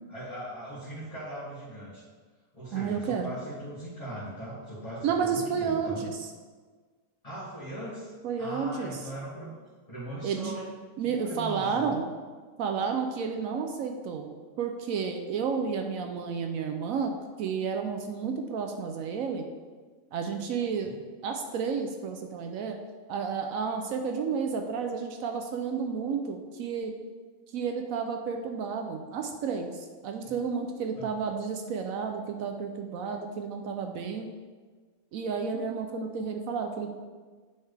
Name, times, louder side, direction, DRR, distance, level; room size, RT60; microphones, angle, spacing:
voice 1, 0.1-2.0 2.5-6.0 7.2-8.1 8.4-9.6 9.9-10.7 11.0-11.9 20.7-21.0 30.2-30.4 31.0-31.1, right 1 dB, 25° left, -11 dB, 2.0 m, -39 dB
voice 2, 2.7-3.3 5.0-6.2 8.2-9.0 10.2-10.5 11.0-12.1 12.6-14.3 14.6-17.1 17.4-19.5 20.1-20.9 21.2-22.8 23.1-26.9 27.5-34.3 35.1-36.9, right 6 dB, 75° right, 4 dB, 1.0 m, -31 dB
9.2 x 4.3 x 3.3 m, 1.4 s
omnidirectional pair, 1.5 m